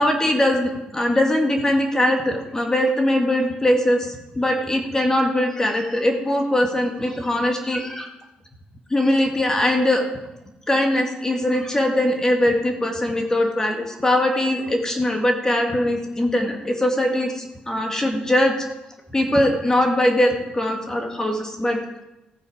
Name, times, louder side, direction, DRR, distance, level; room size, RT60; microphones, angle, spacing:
voice 1, 0.0-8.1 8.9-10.0 10.7-18.7 19.1-21.8, left 1 dB, 20° left, 2 dB, 2.0 m, -21 dB
15.5 x 8.9 x 5.0 m, 0.98 s
cardioid pair, 95°, 3 cm